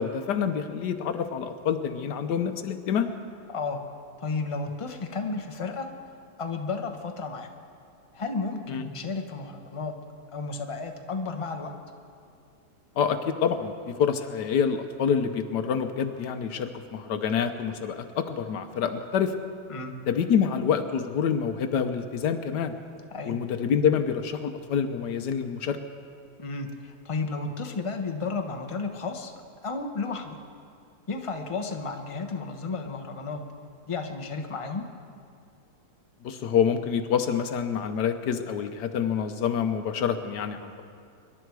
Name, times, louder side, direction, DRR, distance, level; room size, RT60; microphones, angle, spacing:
voice 1, 0.0-3.1 8.7-8.9 13.0-13.7 14.0-19.3 20.1-22.7 23.2-25.8 36.2-40.8, left 7 dB, 75° left, 8 dB, 1.4 m, -27 dB
voice 2, 3.5-3.8 4.2-5.9 6.4-7.5 8.1-9.9 10.3-11.7 19.7-19.9 23.1-23.4 26.4-29.3 29.6-30.4 31.1-33.4 33.9-34.9, left 4 dB, 25° left, 5 dB, 0.8 m, -32 dB
25.0 x 11.5 x 4.7 m, 2.3 s
omnidirectional pair, 1.8 m